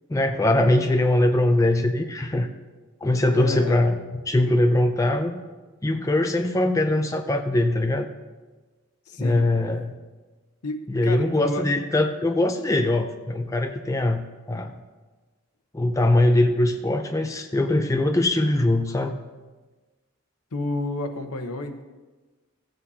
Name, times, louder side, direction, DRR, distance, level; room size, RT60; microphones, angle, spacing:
voice 1, 0.1-2.5 3.0-4.0 4.3-5.4 5.8-8.1 9.2-9.9 10.9-14.7 15.7-19.1, left 1 dB, 15° left, 5 dB, 0.4 m, -22 dB
voice 2, 3.3-3.8 9.1-9.5 10.6-11.7 14.5-14.6 20.5-21.8, left 2 dB, 85° left, 7 dB, 0.9 m, -30 dB
16.0 x 7.8 x 2.8 m, 1.3 s
head